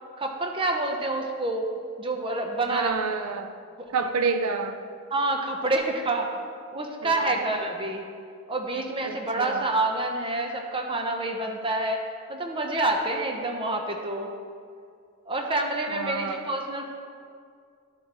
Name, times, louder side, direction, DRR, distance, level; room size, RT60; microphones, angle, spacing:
voice 1, 0.2-1.6 2.0-2.9 5.1-6.3 6.7-8.0 8.5-12.0 12.3-14.3 15.3-16.9, right 2 dB, 25° right, 2 dB, 0.8 m, -27 dB
voice 2, 2.7-3.5 3.9-4.8 7.0-7.4 9.0-9.7 15.9-16.4, right 5 dB, 75° right, 8 dB, 0.4 m, -29 dB
12.5 x 7.1 x 3.0 m, 2.3 s
head